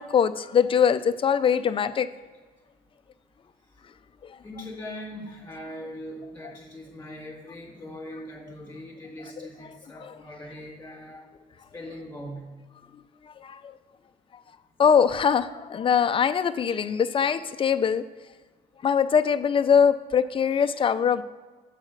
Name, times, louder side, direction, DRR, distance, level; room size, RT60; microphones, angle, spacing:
voice 1, 0.0-2.1 10.0-10.1 13.4-13.7 14.8-18.0 18.8-21.2, left 7 dB, 30° left, 12 dB, 0.5 m, -22 dB
voice 2, 4.4-11.2 11.7-12.5, equal, 10° left, -2 dB, 2.7 m, -40 dB
7.2 x 4.9 x 6.6 m, 1.4 s
cardioid pair, 110°, 17 cm